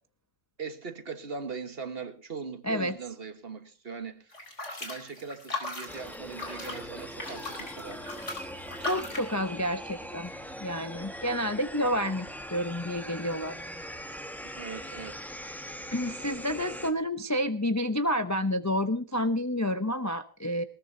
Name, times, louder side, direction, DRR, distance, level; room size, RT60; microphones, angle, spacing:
voice 1, 0.6-4.3 4.7-8.0 14.4-15.2, right 5 dB, 45° right, 1.7 m, -40 dB
voice 2, 2.6-3.0 8.8-10.3 10.6-13.6 15.9-20.6, equal, 20° left, 0.5 m, -29 dB
sound 1, 4.3-9.3, left 3 dB, 55° left, 4.6 m, -38 dB
sound 2, 5.9-16.9, equal, ahead, 1.5 m, -41 dB
20.5 x 18.5 x 2.8 m
omnidirectional pair, 1.5 m